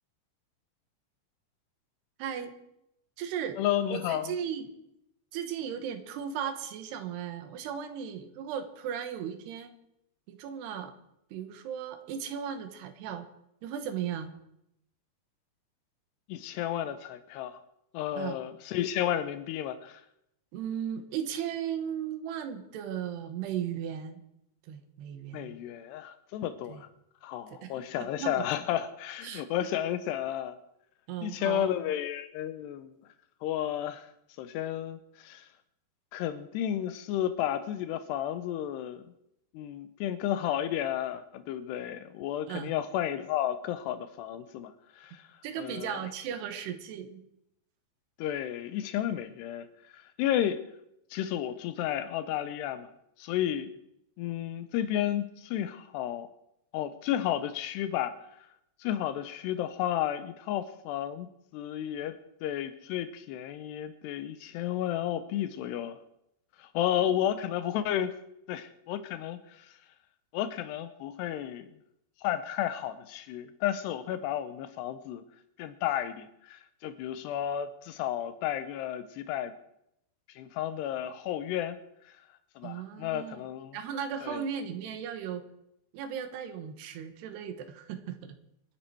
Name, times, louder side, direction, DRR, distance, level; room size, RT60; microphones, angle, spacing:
voice 1, 2.2-2.6 3.2-3.6 3.9-4.7 5.3-9.7 10.3-10.9 11.3-13.3 13.6-14.3 18.2-18.4 20.5-24.2 24.6-25.6 26.7-26.8 27.5-28.5 29.2-29.4 31.1-31.7 42.5-42.7 45.4-47.2 67.0-67.1 82.6-83.4 83.7-85.4 85.9-88.4, right 8 dB, 80° right, 9 dB, 3.3 m, -36 dB
voice 2, 3.6-4.3 16.3-17.6 17.9-20.0 25.3-26.9 27.2-30.5 31.2-33.0 33.4-34.1 34.4-35.5 36.1-39.0 39.5-44.7 45.0-45.3 45.6-46.0 48.2-49.7 49.9-50.6 51.1-52.9 53.2-53.7 54.2-56.3 56.7-58.3 58.8-61.3 61.5-62.2 62.4-66.0 66.6-68.1 68.5-69.7 70.3-71.7 72.2-75.2 75.6-79.5 80.4-81.8 82.6-83.8 84.2-84.4, left 11 dB, 85° left, 11 dB, 2.9 m, -32 dB
25.5 x 9.7 x 4.6 m, 0.79 s
omnidirectional pair, 4.8 m